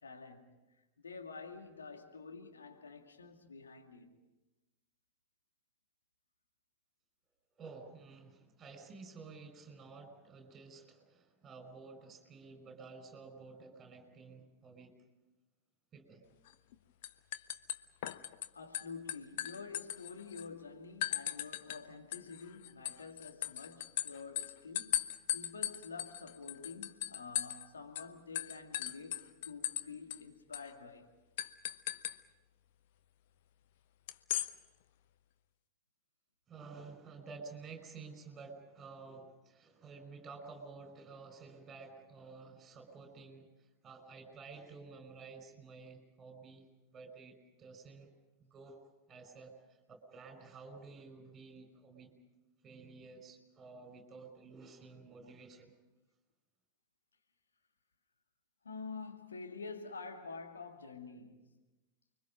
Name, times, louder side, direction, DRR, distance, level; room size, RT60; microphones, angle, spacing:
voice 1, 0.0-0.6 1.0-4.2 18.5-31.1 58.6-61.5, left 4 dB, 70° left, 2.3 m, -48 dB
voice 2, 7.6-14.9 15.9-16.2 36.5-46.7 46.9-48.1 48.4-48.8 49.1-52.2 52.6-55.7, right 4 dB, 25° right, 5.6 m, -52 dB
sound 1, 16.5-16.7 17.0-18.5 18.7-20.5 21.0-21.8 22.1-27.7 28.0-28.1 28.4-29.8 30.1-30.2 30.5-30.7 31.4-32.2 34.1-34.5, left 12 dB, 55° left, 0.9 m, -38 dB
30.0 x 23.5 x 5.3 m
figure-of-eight pair, 90°, 0 cm